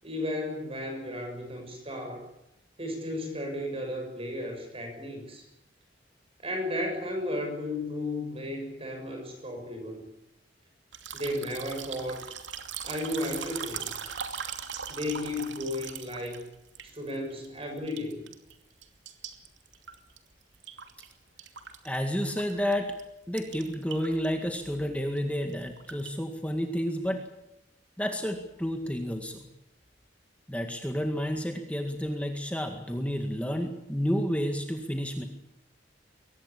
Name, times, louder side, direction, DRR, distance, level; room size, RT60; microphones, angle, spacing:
voice 1, 0.0-2.2 2.8-5.4 6.4-10.0 11.1-12.2 12.8-13.9 14.9-16.4 16.9-18.2, left 1 dB, 30° right, 4 dB, 6.9 m, -34 dB
sound 1, 10.9-17.5 17.8-18.5 18.8-21.1 21.4-22.7 23.0-23.1 23.4-24.3 24.5-24.7 25.2-26.1, right 7 dB, 90° right, 2.6 m, -40 dB
voice 2, 21.8-22.9 23.3-27.2 28.0-29.4 30.5-35.2, equal, 5° left, 4 dB, 2.0 m, -30 dB
23.5 x 18.5 x 8.5 m, 0.86 s
head